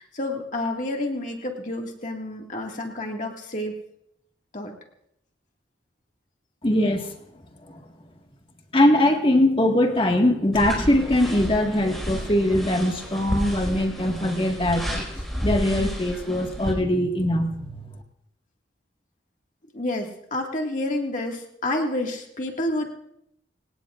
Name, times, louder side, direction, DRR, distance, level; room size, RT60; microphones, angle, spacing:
voice 1, 0.0-3.8 4.5-4.7 19.7-22.9, left 1 dB, 45° left, 1 dB, 2.1 m, -29 dB
voice 2, 6.6-7.1 8.7-15.0 15.4-17.7, left 1 dB, 30° left, 3 dB, 1.8 m, -21 dB
sound 1, 10.5-16.7, equal, ahead, 5.1 m, -31 dB
26.5 x 18.0 x 2.5 m, 0.77 s
head